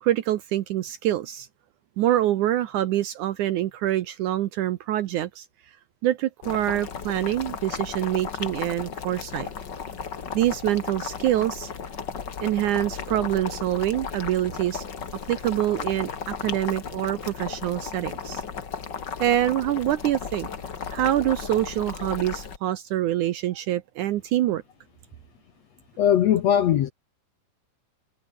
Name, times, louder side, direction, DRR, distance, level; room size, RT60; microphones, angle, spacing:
voice 1, 0.0-1.5 2.0-5.5 6.0-9.5 10.3-11.7 12.4-14.9 15.3-18.4 19.2-20.5 20.9-24.6, right 13 dB, 70° right, 2.0 m, -25 dB
Boiling, 6.4-22.6, left 6 dB, 35° left, 2.0 m, -35 dB
voice 2, 26.0-26.9, left 10 dB, 65° left, 1.7 m, -20 dB
omnidirectional pair, 4.3 m